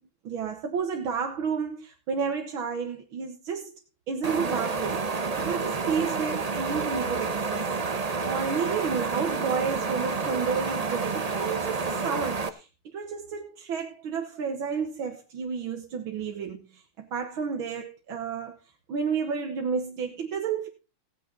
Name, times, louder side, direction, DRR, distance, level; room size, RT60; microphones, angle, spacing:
voice 1, 0.2-3.7 4.1-7.7 8.0-18.6 18.9-20.7, right 6 dB, 80° right, 2.1 m, -31 dB
sound 1, 4.2-12.5, right 4 dB, 40° right, 0.5 m, -29 dB
17.0 x 9.3 x 3.9 m
omnidirectional pair, 2.2 m